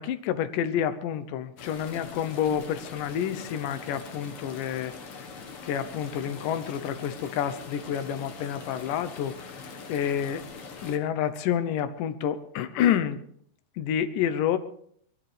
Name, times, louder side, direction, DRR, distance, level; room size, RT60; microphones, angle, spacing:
voice 1, 0.0-4.9 5.6-9.6 9.9-10.5 10.8-13.2 13.8-14.6, left 9 dB, 85° left, 11 dB, 2.4 m, -29 dB
sound 1, 1.6-11.0, left 5 dB, 55° left, 1.9 m, -43 dB
22.0 x 15.0 x 3.3 m, 0.64 s
omnidirectional pair, 3.8 m